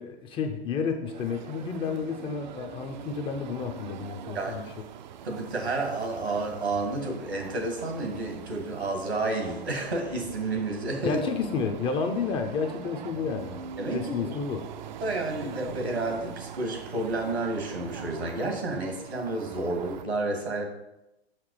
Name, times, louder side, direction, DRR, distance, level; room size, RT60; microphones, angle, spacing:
voice 1, 0.0-4.7 11.0-14.7, left 5 dB, 15° left, 5 dB, 0.5 m, -31 dB
sound 1, 1.1-20.1, right 8 dB, 45° right, 0.5 m, -43 dB
voice 2, 5.2-11.2 13.8-14.3 15.0-20.6, right 2 dB, 80° right, 2 dB, 2.1 m, -30 dB
5.9 x 5.9 x 4.9 m, 0.91 s
figure-of-eight pair, 110°, 32 cm